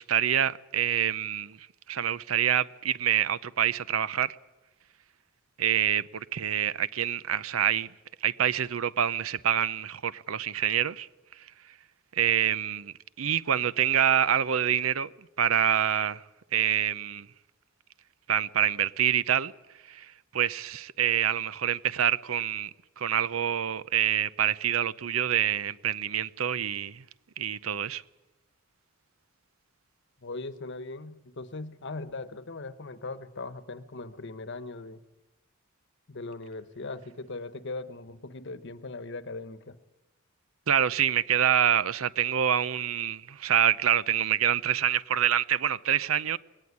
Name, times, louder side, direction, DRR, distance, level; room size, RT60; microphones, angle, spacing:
voice 1, 0.0-1.6 1.9-4.4 5.6-7.9 8.2-11.1 12.1-15.1 15.4-16.2 16.5-17.3 18.3-19.5 19.9-20.1 20.3-22.7 23.0-27.0 27.4-28.0 40.7-46.4, right 9 dB, 80° right, 0.7 m, -26 dB
voice 2, 30.2-35.0 36.1-39.8, left 3 dB, 60° left, 1.1 m, -39 dB
20.5 x 18.0 x 9.6 m
head